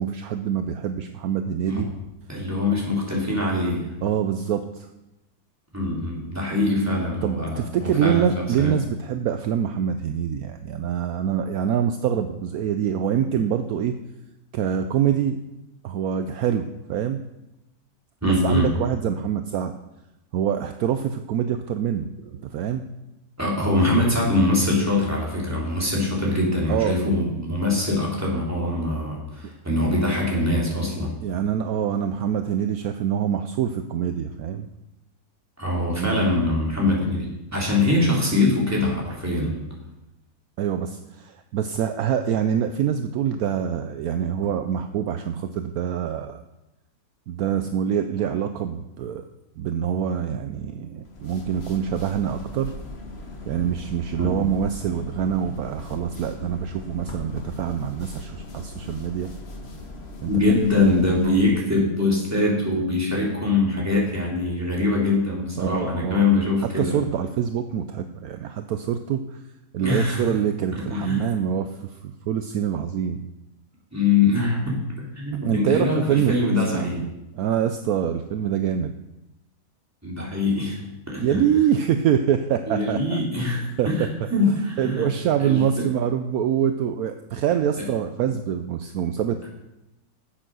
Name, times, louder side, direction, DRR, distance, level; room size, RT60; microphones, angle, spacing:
voice 1, 0.0-1.9 4.0-4.9 7.2-13.9 14.5-15.4 15.8-17.2 18.2-19.7 20.3-22.1 22.4-22.8 26.7-27.0 31.0-34.7 35.8-36.3 40.6-46.4 47.3-49.3 49.6-52.7 53.5-59.3 60.2-60.3 61.2-61.4 65.6-66.2 66.6-69.4 69.7-73.3 75.4-77.1 77.3-78.9 81.2-83.9 84.2-84.3 84.8-89.5, right 9 dB, 70° right, 8 dB, 1.0 m, -25 dB
voice 2, 2.3-3.9 5.7-8.3 8.6-8.7 18.2-18.7 23.4-31.2 35.6-39.6 54.2-54.4 60.2-67.0 69.8-70.3 70.7-71.2 73.9-74.8 75.1-77.0 80.0-80.8 81.1-81.4 82.7-85.1 85.4-85.8 87.8-87.9, left 2 dB, 10° right, -4 dB, 3.1 m, -23 dB
sound 1, 51.0-61.6, left 2 dB, 40° left, 1.5 m, -39 dB
10.0 x 7.8 x 6.2 m, 0.95 s
omnidirectional pair, 1.7 m